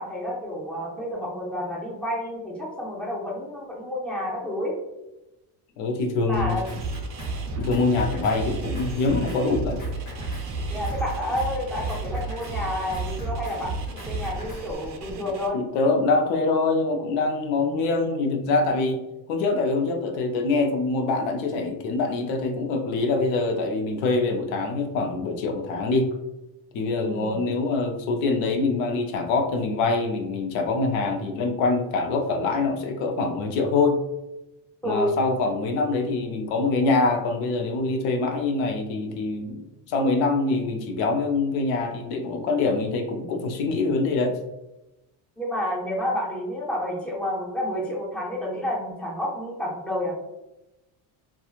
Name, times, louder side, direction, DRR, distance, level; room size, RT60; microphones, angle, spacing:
voice 1, 0.0-4.7 6.2-6.7 10.7-15.6 27.0-27.3 34.8-35.1 45.4-50.2, left 1 dB, 5° left, -4 dB, 0.6 m, -30 dB
voice 2, 5.8-6.6 7.5-9.8 15.5-19.0 19.3-26.1 26.7-34.0 34.8-44.4, left 3 dB, 80° left, 5 dB, 0.6 m, -24 dB
sound 1, 6.3-15.5, right 3 dB, 40° right, 0.4 m, -32 dB
Drum kit, 6.4-14.7, left 3 dB, 45° left, 0.8 m, -42 dB
2.9 x 2.3 x 2.3 m, 0.95 s
cardioid pair, 130°, 46 cm